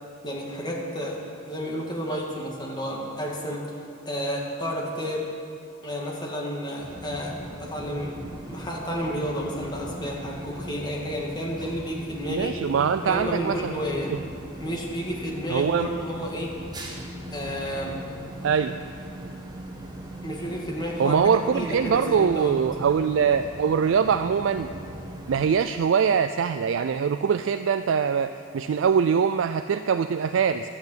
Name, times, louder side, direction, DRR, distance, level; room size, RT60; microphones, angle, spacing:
voice 1, 0.2-3.6 4.1-5.2 5.8-8.2 8.5-12.6 13.0-14.1 14.6-16.5 17.3-18.0 20.2-21.2 21.5-22.5, equal, 20° left, -2 dB, 2.2 m, -31 dB
sound 1, 6.8-25.6, right 1 dB, 20° right, 1.7 m, -39 dB
voice 2, 12.3-13.7 14.1-14.2 15.5-15.9 18.4-18.7 21.0-24.7 25.3-30.7, right 6 dB, 70° right, 10 dB, 0.4 m, -23 dB
12.0 x 8.7 x 8.1 m, 2.5 s
head